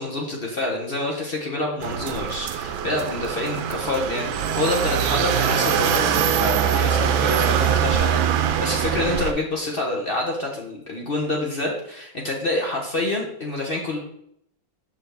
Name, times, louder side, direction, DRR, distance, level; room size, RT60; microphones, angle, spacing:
voice 1, 0.0-14.0, left 2 dB, 40° left, -1 dB, 0.8 m, -27 dB
sound 1, 1.8-9.3, right 8 dB, 85° right, 1.4 m, -23 dB
6.6 x 5.7 x 3.4 m, 0.72 s
omnidirectional pair, 2.1 m